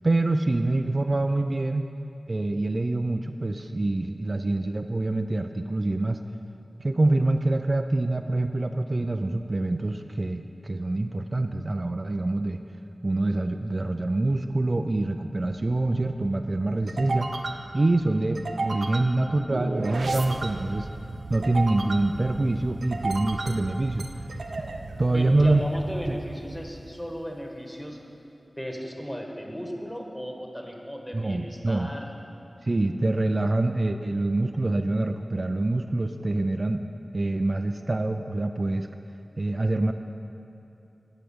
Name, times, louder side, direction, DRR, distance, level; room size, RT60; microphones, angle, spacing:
voice 1, 0.0-1.9 2.3-6.2 6.8-12.6 13.0-17.3 17.7-20.9 21.3-24.1 25.0-25.6 26.1-26.2 31.1-31.9 32.6-36.8 37.1-38.9 39.4-39.9, right 2 dB, 45° right, 6 dB, 0.4 m, -25 dB
sound 1, 15.3-27.3, right 2 dB, 90° right, 0.7 m, -35 dB
voice 2, 25.1-28.0 28.6-32.1, equal, 10° left, 1 dB, 1.5 m, -36 dB
14.0 x 4.9 x 8.7 m, 2.8 s
wide cardioid pair, 65°, 0 cm